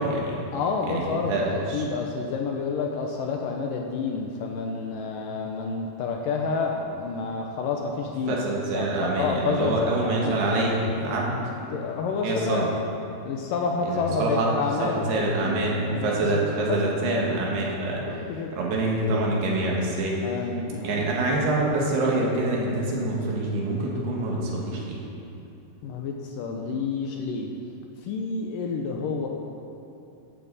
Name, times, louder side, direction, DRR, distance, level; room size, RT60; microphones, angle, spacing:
voice 1, 0.0-0.4 0.9-1.9 8.3-11.4 12.2-12.6 13.9-14.5 14.8-18.0 18.6-20.2 20.8-25.0, right 2 dB, 85° right, -3 dB, 3.9 m, -26 dB
voice 2, 0.5-8.4 8.7-10.4 11.4-12.7 13.3-17.7 18.1-18.5 20.2-21.0 25.8-27.5 28.0-29.3, left 4 dB, 75° left, 1 dB, 2.1 m, -29 dB
14.5 x 11.0 x 4.1 m, 2.7 s
omnidirectional pair, 4.6 m